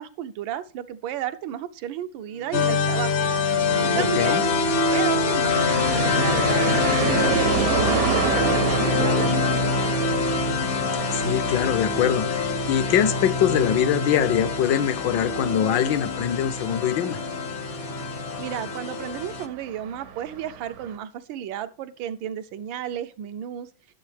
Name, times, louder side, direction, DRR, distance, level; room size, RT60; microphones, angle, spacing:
voice 1, 0.0-3.3 3.8-4.5 4.9-10.3 18.0-23.7, right 10 dB, 80° right, 1.4 m, -33 dB
Bowed string instrument, 2.2-7.1, equal, 90° left, 6.3 m, -49 dB
sound 1, 2.5-19.5, left 4 dB, 55° left, 0.7 m, -25 dB
voice 2, 3.9-4.4 11.1-17.2, left 10 dB, 75° left, 1.2 m, -23 dB
sound 2, 5.5-20.9, right 7 dB, 65° right, 1.0 m, -30 dB
11.5 x 6.8 x 3.3 m
omnidirectional pair, 2.1 m